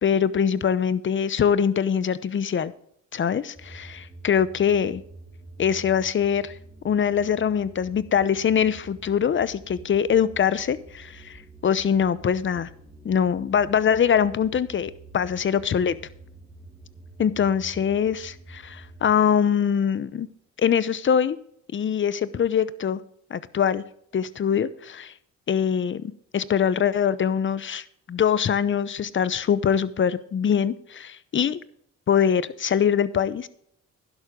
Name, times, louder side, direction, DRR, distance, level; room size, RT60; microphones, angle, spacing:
voice 1, 0.0-2.7 3.1-5.0 5.6-6.5 6.8-11.4 11.6-12.7 13.0-16.0 17.2-20.3 20.6-21.4 21.7-23.0 23.3-23.8 24.1-25.1 25.5-31.6 32.1-33.5, left 8 dB, 40° left, 17 dB, 0.8 m, -23 dB
sound 1, 3.5-19.1, right 2 dB, 15° right, 3.1 m, -47 dB
11.5 x 11.5 x 3.8 m, 0.68 s
cardioid pair, 90°, 30 cm